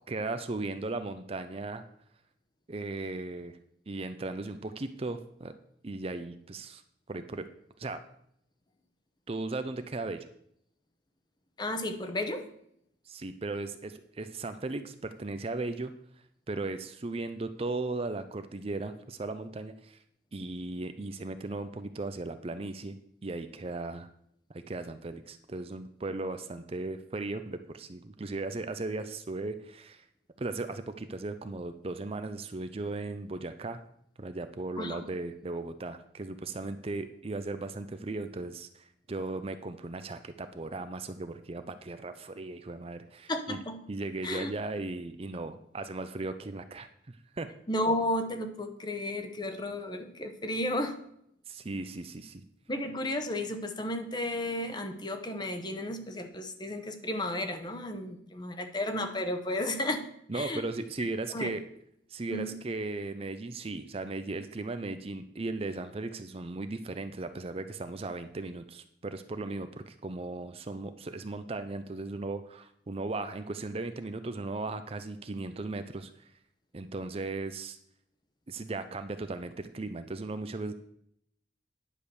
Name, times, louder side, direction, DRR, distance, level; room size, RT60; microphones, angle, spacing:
voice 1, 0.1-1.8 2.7-3.6 3.9-5.5 5.8-6.8 7.1-7.5 7.8-8.0 9.3-10.2 13.1-15.9 16.5-20.0 20.3-23.0 23.2-24.1 24.5-30.0 30.4-33.8 34.2-43.6 43.9-47.5 51.5-52.4 60.3-61.6 62.1-76.3 76.7-77.8 78.5-80.7, right 2 dB, 30° right, 9 dB, 0.5 m, -37 dB
voice 2, 11.6-12.5 34.8-35.1 43.3-43.8 44.2-44.5 47.7-51.0 52.7-60.1 60.3-60.6 61.3-61.5 62.3-62.6, left 1 dB, 25° left, 7 dB, 0.9 m, -33 dB
10.0 x 5.0 x 7.0 m, 0.71 s
head